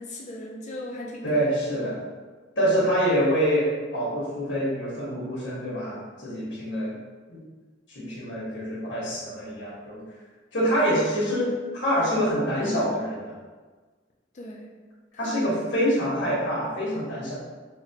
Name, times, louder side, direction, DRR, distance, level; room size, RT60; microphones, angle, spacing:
voice 1, 0.0-1.3 14.3-14.8 15.1-15.3 15.7-15.8, left 1 dB, 40° left, -3 dB, 0.5 m, -38 dB
voice 2, 1.2-2.0 2.6-6.9 7.3-7.4 7.9-10.0 10.5-13.3 15.2-17.3, equal, 75° left, -7 dB, 1.3 m, -26 dB
4.1 x 2.2 x 2.8 m, 1.4 s
head